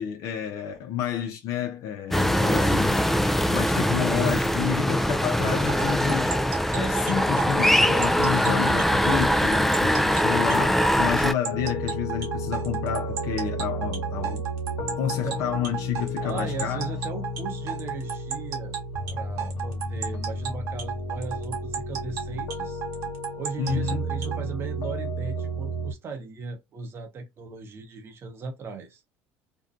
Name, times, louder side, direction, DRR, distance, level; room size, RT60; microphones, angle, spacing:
voice 1, 0.0-3.0 3.5-6.4 6.7-14.4 15.0-16.9 23.6-24.0, left 9 dB, 60° left, 0.5 m, -30 dB
sound 1, 2.1-11.3, equal, 5° left, 0.3 m, -22 dB
voice 2, 2.3-2.8 15.2-15.5 16.2-18.8 19.1-22.8 23.4-29.0, right 4 dB, 40° right, 0.7 m, -37 dB
sound 2, 5.7-24.4, right 9 dB, 70° right, 0.9 m, -33 dB
sound 3, 11.5-25.9, equal, 85° left, 0.8 m, -32 dB
2.5 x 2.2 x 2.5 m
supercardioid pair, 85°, 6 cm